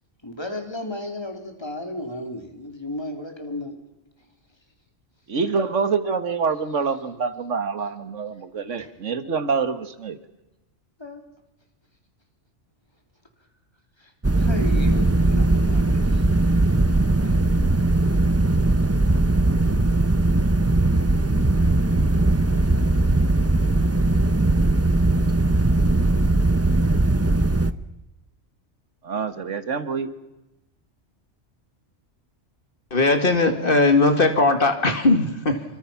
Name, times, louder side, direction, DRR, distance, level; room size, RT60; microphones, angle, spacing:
voice 1, 0.2-3.7 8.8-8.9 11.0-11.2 14.0-14.1 14.4-16.2, left 1 dB, 20° left, 3.7 m, -34 dB
voice 2, 5.3-10.2 29.0-30.1, right 5 dB, 85° right, 1.8 m, -26 dB
sound 1, 14.2-27.7, right 2 dB, 15° right, 0.7 m, -19 dB
voice 3, 32.9-35.6, left 2 dB, 50° left, 2.4 m, -19 dB
26.5 x 25.0 x 5.8 m
omnidirectional pair, 1.2 m